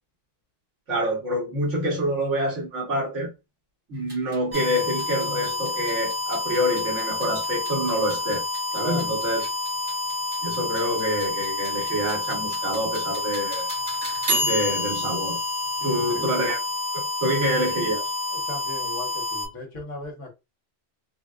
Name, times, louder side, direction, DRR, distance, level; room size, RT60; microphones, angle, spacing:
voice 1, 0.9-3.3 3.9-8.4 8.7-9.5 10.4-13.7 14.4-15.4 15.8-16.6 16.9-18.1, equal, 75° right, 1.6 m, -26 dB
sound 1, 4.0-16.7, right 1 dB, 25° right, 0.8 m, -34 dB
sound 2, 4.5-19.5, left 3 dB, 40° right, 1.7 m, -29 dB
voice 2, 8.7-9.2 15.8-16.3 18.3-20.3, left 1 dB, 75° left, 1.6 m, -37 dB
3.9 x 2.1 x 2.4 m
omnidirectional pair, 1.3 m